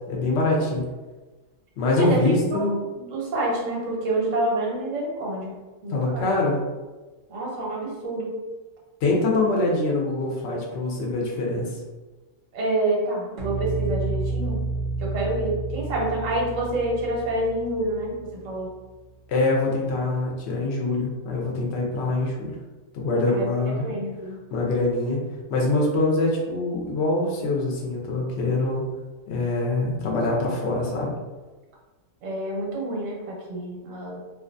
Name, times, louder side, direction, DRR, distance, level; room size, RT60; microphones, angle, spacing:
voice 1, 0.1-0.8 1.8-2.7 5.9-6.6 9.0-11.8 19.3-22.5 22.9-23.9 24.5-25.2 25.5-28.8 29.3-31.1, left 2 dB, 65° left, -2 dB, 0.9 m, -24 dB
voice 2, 2.5-5.6 5.8-6.3 7.3-8.4 12.5-14.6 15.0-18.2 18.4-18.7 23.3-24.4 32.2-34.2, right 1 dB, 85° right, -2 dB, 1.1 m, -28 dB
sound 1, 13.4-18.6, right 3 dB, 60° right, 0.5 m, -30 dB
2.5 x 2.3 x 2.5 m, 1.2 s
omnidirectional pair, 1.3 m